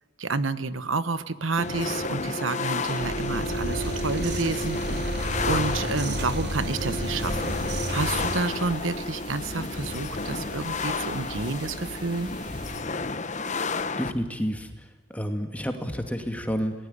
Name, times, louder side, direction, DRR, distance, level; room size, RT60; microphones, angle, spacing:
voice 1, 0.2-12.3, right 3 dB, 80° right, 13 dB, 1.3 m, -30 dB
sound 1, 1.6-14.1, left 3 dB, 35° left, 1.1 m, -31 dB
sound 2, 3.0-8.4, right 1 dB, 55° right, 4.4 m, -31 dB
sound 3, 7.0-12.8, right 1 dB, 25° right, 4.4 m, -42 dB
voice 2, 14.0-14.7 15.1-16.7, equal, 5° left, 5 dB, 2.4 m, -29 dB
28.5 x 20.0 x 9.9 m, 1.2 s
head